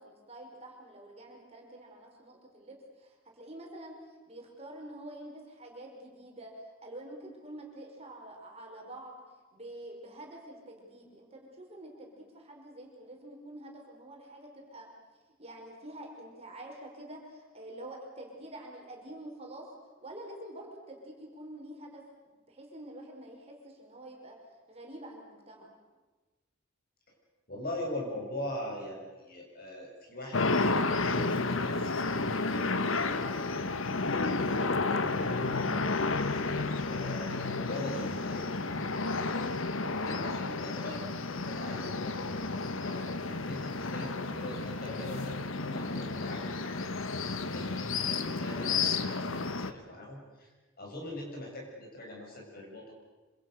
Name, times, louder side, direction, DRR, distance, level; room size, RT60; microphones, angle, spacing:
voice 1, 0.0-9.2 9.5-14.9 15.4-19.7 20.0-24.4 24.7-25.8, right 1 dB, 30° right, 0 dB, 5.4 m, -47 dB
voice 2, 27.5-33.7 34.1-46.9 47.3-50.5 50.8-52.9, left 1 dB, 50° left, 0 dB, 7.6 m, -42 dB
sound 1, 30.3-49.7, left 3 dB, 80° left, 1.4 m, -31 dB
27.0 x 26.5 x 6.7 m, 1.3 s
head